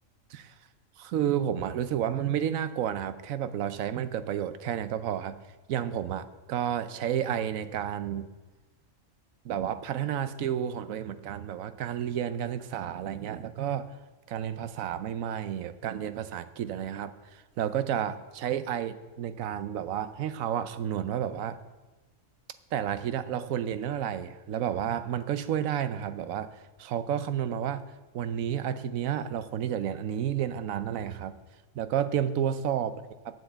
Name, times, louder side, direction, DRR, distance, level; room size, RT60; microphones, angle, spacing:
voice 1, 1.0-5.4 5.7-8.3 9.4-13.9 14.3-21.6 22.7-26.5 26.8-27.8 28.1-31.3 31.8-32.9 33.2-33.3, right 9 dB, 80° right, 12 dB, 1.1 m, -31 dB
9.4 x 7.9 x 7.7 m, 1.2 s
omnidirectional pair, 1.4 m